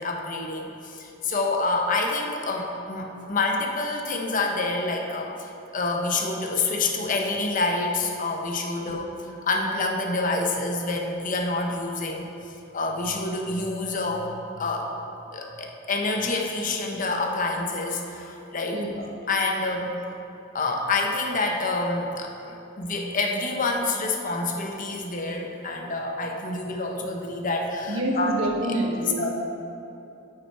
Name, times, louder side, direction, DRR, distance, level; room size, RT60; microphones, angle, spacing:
voice 1, 0.0-9.0 9.4-12.3 12.7-14.9 15.3-19.9 20.5-28.3 29.2-29.3, left 3 dB, 40° left, 1 dB, 0.8 m, -27 dB
voice 2, 27.9-29.3, right 1 dB, 80° right, -1 dB, 1.3 m, -27 dB
8.9 x 6.1 x 4.5 m, 2.9 s
head